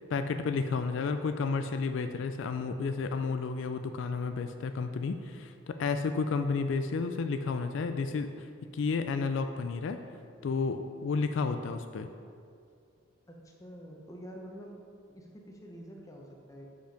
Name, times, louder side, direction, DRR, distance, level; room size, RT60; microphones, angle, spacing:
voice 1, 0.1-8.5 8.7-10.0 10.4-12.1, left 4 dB, 70° left, 8 dB, 0.3 m, -31 dB
voice 2, 13.3-14.8 15.1-16.7, equal, 15° left, 0 dB, 0.8 m, -47 dB
6.9 x 5.2 x 5.2 m, 2.4 s
head